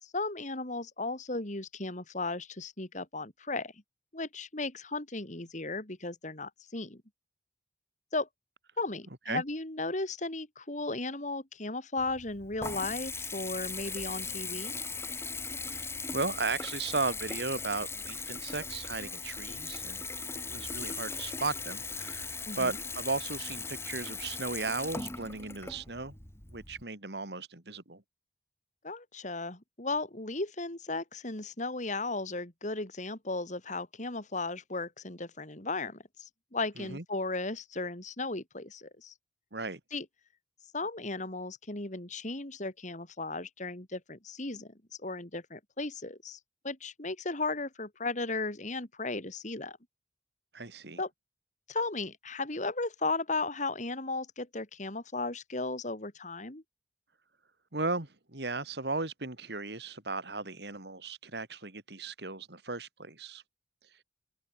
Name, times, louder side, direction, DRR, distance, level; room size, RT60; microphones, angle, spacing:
voice 1, 0.0-3.7 4.1-7.0 8.1-8.3 8.8-14.8 22.5-22.8 28.8-39.1 39.9-40.0 40.7-44.7 45.0-46.4 46.6-49.8 51.0-51.1 51.7-56.6, left 3 dB, 45° left, 3.1 m, -35 dB
Water tap faucet / Bathtub (filling or washing) / Trickle dribble, 12.0-26.8, left 4 dB, 15° left, 2.4 m, -39 dB
voice 2, 15.7-20.0 20.3-26.1 26.5-28.0 36.8-37.0 39.5-39.8 50.5-51.0 57.7-63.4, right 3 dB, 70° right, 2.9 m, -36 dB
open air
head